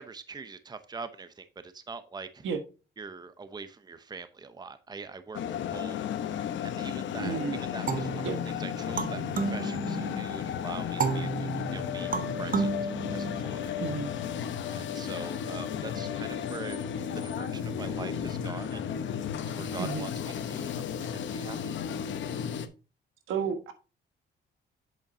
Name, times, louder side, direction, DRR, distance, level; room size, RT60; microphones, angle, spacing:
voice 1, 0.0-2.5 3.0-8.3 8.6-13.8 14.7-16.9 17.1-18.8 19.5-20.1 20.5-20.8 21.1-21.8, right 4 dB, 20° right, 11 dB, 0.7 m, -43 dB
sound 1, 5.3-22.7, left 8 dB, 70° left, 0.9 m, -34 dB
voice 2, 7.2-7.6 8.2-8.4 13.8-14.1 19.8-20.0 23.3-23.7, right 6 dB, 80° right, 8 dB, 1.4 m, -31 dB
sound 2, 7.9-10.4 11.0-13.8, right 5 dB, 45° right, 1.1 m, -32 dB
8.1 x 7.0 x 2.7 m, 0.33 s
cardioid pair, 90°, 20 cm